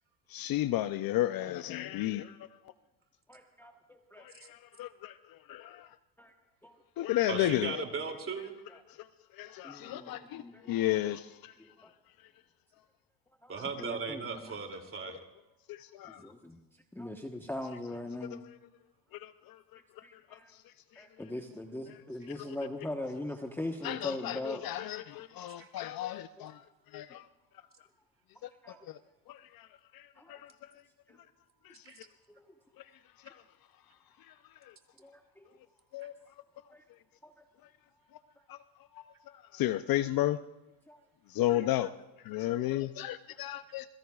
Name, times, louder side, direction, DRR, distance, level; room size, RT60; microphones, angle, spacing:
voice 1, 0.3-2.4 4.2-5.1 5.5-5.9 7.0-7.8 9.4-11.5 15.7-16.2 19.1-19.6 20.3-20.4 23.8-26.6 26.9-27.2 28.9-29.0 29.3-29.7 29.9-30.5 31.7-31.8 33.3-33.4 35.9-36.1 38.5-38.6 39.0-39.1 39.5-40.4 41.3-41.9 42.2-43.9, left 14 dB, 50° left, 13 dB, 0.6 m, -33 dB
voice 2, 3.3-4.2 6.2-6.3 6.6-6.7 9.6-11.0 11.6-11.9 13.4-13.5 13.8-14.6 16.1-16.6 16.9-18.4 20.0-20.5 21.0-24.6 26.4-26.5 28.6-28.8 30.2-30.4 31.1-31.2 32.3-32.5 35.0-35.4 36.7-36.8 37.2-37.3 40.9-41.0 42.4-42.5 43.0-43.4, left 1 dB, 5° left, 2 dB, 1.2 m, -41 dB
voice 3, 7.3-8.5 13.5-15.2 25.6-25.7 31.8-32.0, right 5 dB, 25° right, 4 dB, 2.8 m, -37 dB
27.0 x 22.0 x 2.4 m, 1.0 s
supercardioid pair, 115°, 48 cm